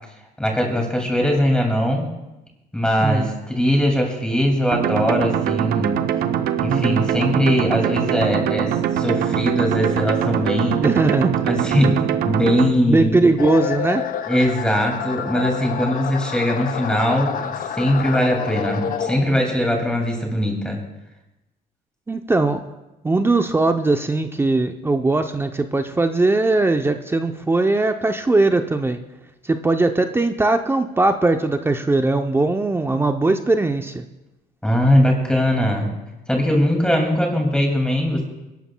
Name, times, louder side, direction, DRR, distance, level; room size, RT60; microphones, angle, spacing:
voice 1, 0.4-2.1 2.7-6.0 6.6-10.8 11.4-13.3 14.3-20.8 34.6-35.9 36.3-38.2, equal, 5° left, 1 dB, 2.3 m, -20 dB
sound 1, 4.7-12.7, right 9 dB, 65° right, 0.6 m, -22 dB
voice 2, 6.7-7.1 10.8-11.4 12.9-14.0 22.1-22.6 23.0-29.0 29.4-34.0, right 2 dB, 15° right, 6 dB, 0.6 m, -20 dB
sound 2, 13.4-19.6, left 8 dB, 55° left, 0.8 m, -28 dB
28.5 x 11.5 x 2.2 m, 1.0 s
cardioid pair, 110°, 17 cm